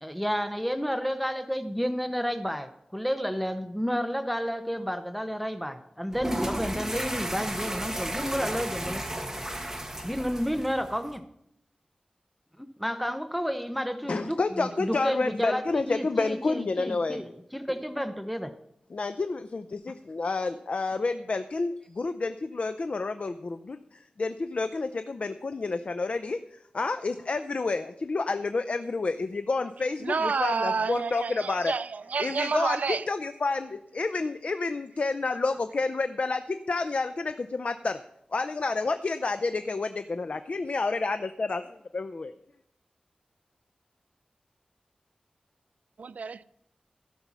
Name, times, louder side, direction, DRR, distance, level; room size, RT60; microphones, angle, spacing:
voice 1, 0.0-9.0 10.0-11.2 12.6-18.5, equal, ahead, 0.8 m, -31 dB
sound 1, 6.1-11.2, right 1 dB, 15° right, 1.3 m, -33 dB
voice 2, 14.1-17.3 18.9-26.4 26.7-31.7 32.2-32.8 33.1-38.0 38.3-42.3, left 3 dB, 60° left, 0.5 m, -29 dB
voice 3, 30.0-33.1 46.0-46.4, right 5 dB, 85° right, 0.4 m, -29 dB
16.0 x 5.5 x 6.1 m
wide cardioid pair, 80°, 3 cm